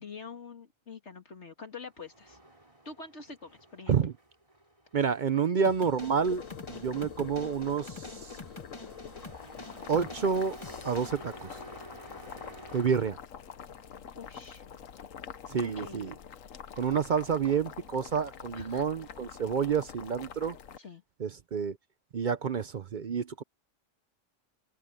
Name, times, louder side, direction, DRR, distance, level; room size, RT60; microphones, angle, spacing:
voice 1, 0.0-2.4 2.9-4.0 6.7-7.2 14.1-14.6 15.6-16.1 18.5-18.9 20.8-21.0, left 4 dB, 60° left, 2.3 m, -46 dB
Truck, 1.8-12.9, right 2 dB, 25° right, 4.0 m, -52 dB
voice 2, 4.9-6.4 6.7-8.4 9.9-10.6 10.8-11.6 12.7-13.2 15.5-16.1 16.8-20.6 21.2-21.8 22.1-23.4, right 6 dB, 50° right, 0.6 m, -29 dB
sound 1, 5.6-11.1, left 3 dB, 25° left, 1.4 m, -47 dB
Boiling, 6.0-20.8, left 8 dB, 85° left, 1.4 m, -46 dB
omnidirectional pair, 1.3 m